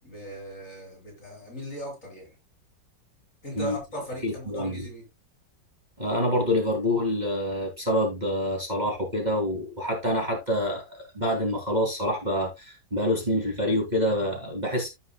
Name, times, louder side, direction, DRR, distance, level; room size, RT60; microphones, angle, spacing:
voice 1, 0.0-2.3 3.4-5.0, equal, 45° left, 5.8 m, -38 dB
voice 2, 4.2-4.9 6.0-14.9, left 1 dB, 25° right, 3.0 m, -27 dB
15.5 x 5.7 x 2.3 m
omnidirectional pair, 1.9 m